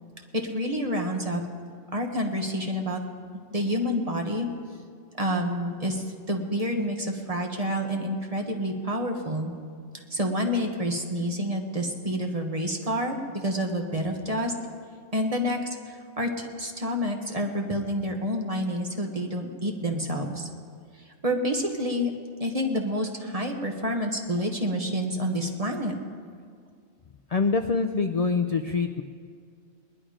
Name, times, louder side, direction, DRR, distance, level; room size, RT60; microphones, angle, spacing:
voice 1, 0.4-1.4 1.9-3.0 3.5-4.5 5.2-9.5 10.1-14.5 15.1-15.6 15.9-20.5 21.2-22.1 22.4-25.9, equal, 30° right, 2 dB, 1.4 m, -28 dB
voice 2, 27.3-29.0, left 4 dB, 50° left, 6 dB, 0.4 m, -25 dB
21.0 x 11.0 x 5.1 m, 2.1 s
omnidirectional pair, 1.3 m